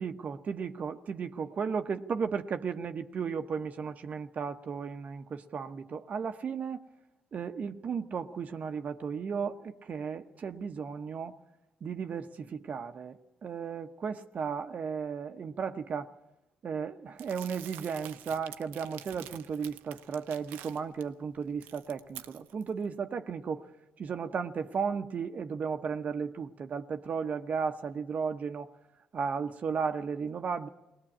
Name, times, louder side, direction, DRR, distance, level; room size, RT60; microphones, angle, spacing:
voice 1, 0.0-6.8 7.3-11.4 11.8-16.1 16.6-23.7 24.0-28.7 29.1-30.7, right 6 dB, 55° right, 1.0 m, -35 dB
Crumpling crinkling, 17.2-21.0 21.4-22.7, right 12 dB, 85° right, 0.7 m, -48 dB
20.0 x 18.5 x 8.7 m
supercardioid pair, 55°, 3 cm